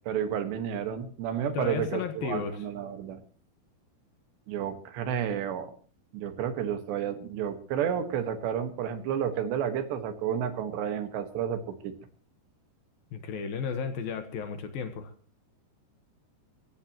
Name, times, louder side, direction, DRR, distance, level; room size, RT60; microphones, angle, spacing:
voice 1, 0.1-3.2 4.5-5.7 6.1-11.9, right 8 dB, 75° right, 8 dB, 3.7 m, -31 dB
voice 2, 1.5-2.6 13.1-15.1, left 6 dB, 65° left, 8 dB, 2.7 m, -33 dB
24.5 x 15.5 x 3.0 m, 0.41 s
omnidirectional pair, 5.1 m